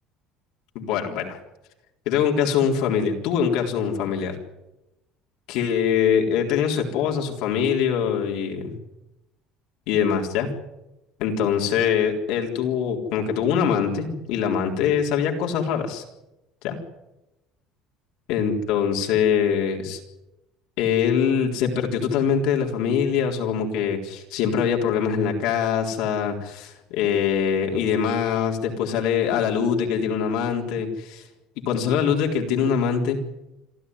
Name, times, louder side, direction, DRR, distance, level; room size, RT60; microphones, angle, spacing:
voice 1, 0.7-1.4 2.1-4.4 5.5-8.7 9.9-10.5 11.2-16.0 16.6-16.8 18.3-20.0 20.8-31.2 31.7-33.2, left 7 dB, 75° left, 1 dB, 3.9 m, -23 dB
26.5 x 13.5 x 9.7 m, 0.96 s
cardioid pair, 145°, 0 cm